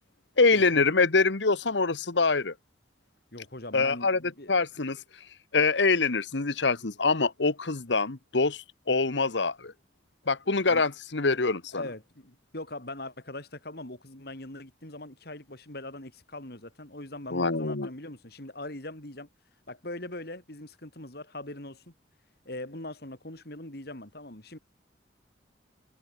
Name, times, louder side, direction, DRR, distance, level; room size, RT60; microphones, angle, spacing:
voice 1, 0.4-2.5 3.7-4.2 4.5-5.0 5.5-9.7 10.3-11.8 17.3-17.9, left 3 dB, 70° left, 1.3 m, -25 dB
voice 2, 3.3-4.6 10.7-10.8 11.7-19.3 19.7-21.9 22.5-24.6, left 1 dB, 55° left, 3.7 m, -41 dB
head